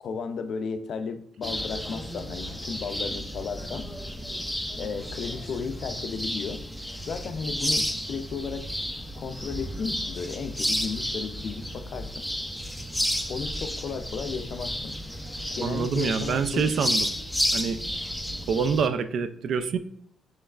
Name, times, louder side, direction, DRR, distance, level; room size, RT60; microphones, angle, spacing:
voice 1, 0.0-3.9 4.8-6.6 7.1-8.7 9.2-12.3 13.3-15.0 15.6-16.7, left 5 dB, 60° left, 9 dB, 0.4 m, -34 dB
bird ambiance, 1.4-18.9, equal, ahead, 0.4 m, -32 dB
voice 2, 15.6-17.1 17.5-17.8 18.5-19.8, right 6 dB, 65° right, 12 dB, 0.3 m, -26 dB
5.3 x 3.2 x 2.3 m, 0.67 s
cardioid pair, 90°, 0 cm